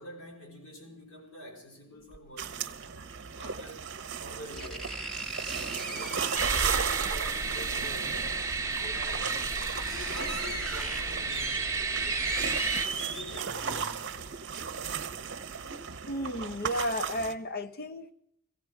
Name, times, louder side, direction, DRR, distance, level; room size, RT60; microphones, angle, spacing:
voice 1, 0.0-2.8 3.3-3.9 4.2-5.0 5.9-8.2 8.6-12.5 12.8-14.1, left 1 dB, 70° left, 4.8 m, -47 dB
sound 1, 2.1-2.2 3.7-3.8 4.5-6.9 8.3-8.4 9.0-9.1 9.3-13.8 14.2-14.3, right 2 dB, 5° left, 1.2 m, -38 dB
sound 2, 2.4-17.3, right 7 dB, 55° right, 0.8 m, -36 dB
sound 3, 6.4-12.9, right 4 dB, 15° right, 1.2 m, -32 dB
voice 2, 16.1-18.1, equal, 45° left, 0.7 m, -33 dB
17.0 x 16.0 x 4.7 m
head